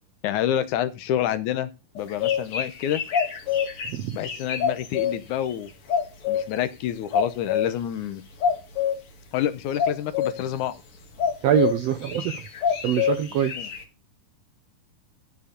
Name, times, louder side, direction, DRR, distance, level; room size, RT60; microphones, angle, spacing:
voice 1, 0.2-1.7 2.0-3.0 4.1-5.7 6.3-8.2 9.3-10.8 13.3-13.7, left 11 dB, 70° left, 2.0 m, -28 dB
sound 1, 2.0-5.1 5.9-6.5 7.1-7.7 8.4-9.0 9.7-10.4 11.2-11.7 12.0-13.8, left 8 dB, 45° left, 2.4 m, -25 dB
voice 2, 11.4-12.3 12.8-13.5, right 10 dB, 85° right, 1.4 m, -23 dB
14.0 x 4.8 x 5.1 m
omnidirectional pair, 4.0 m